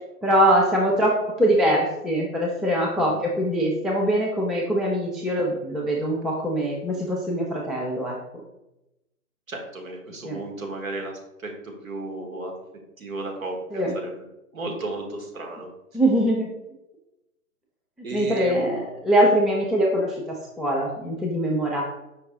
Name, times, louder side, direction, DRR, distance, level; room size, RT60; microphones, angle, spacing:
voice 1, 0.2-1.1 1.4-8.2 10.2-10.4 13.7-13.9 15.9-16.5 18.1-21.8, equal, ahead, -2 dB, 0.3 m, -23 dB
voice 2, 9.5-12.6 13.0-14.1 14.5-16.0 18.0-18.9, right 2 dB, 60° right, 2 dB, 1.2 m, -34 dB
5.3 x 2.8 x 3.6 m, 0.93 s
hypercardioid pair, 175°, 46 cm